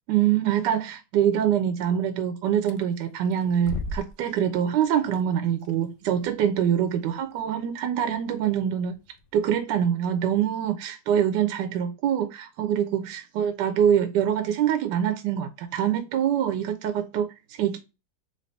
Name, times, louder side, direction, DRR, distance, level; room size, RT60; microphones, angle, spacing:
voice 1, 0.1-9.0 9.3-17.8, right 9 dB, 75° right, 1.1 m, -25 dB
sound 1, 2.6-9.6, left 2 dB, 70° left, 1.1 m, -42 dB
4.1 x 2.9 x 3.2 m
omnidirectional pair, 2.0 m